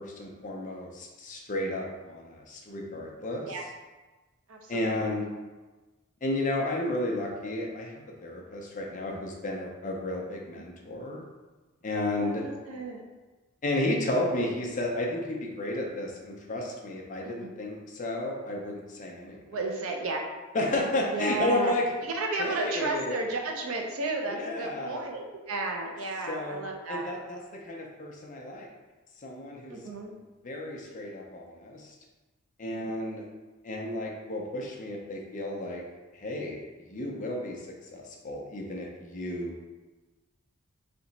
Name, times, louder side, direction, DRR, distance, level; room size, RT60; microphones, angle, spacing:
voice 1, 0.0-3.5 4.7-5.3 6.2-7.9 8.2-11.2 11.8-12.4 13.6-19.4 20.5-21.9 22.4-23.2 24.3-25.1 26.3-26.6 26.9-28.7 29.2-29.8 30.4-31.9 32.6-33.2 33.6-35.8 36.1-36.6 36.9-39.7, left 1 dB, 35° left, 0 dB, 0.6 m, -32 dB
voice 2, 4.5-5.0 9.1-9.2 10.5-10.6 12.1-13.0 17.2-17.5 19.5-20.3 21.1-21.7 22.0-27.1 29.7-30.2 32.7-32.9, right 3 dB, 70° right, 2 dB, 0.6 m, -33 dB
3.3 x 2.9 x 4.0 m, 1.2 s
head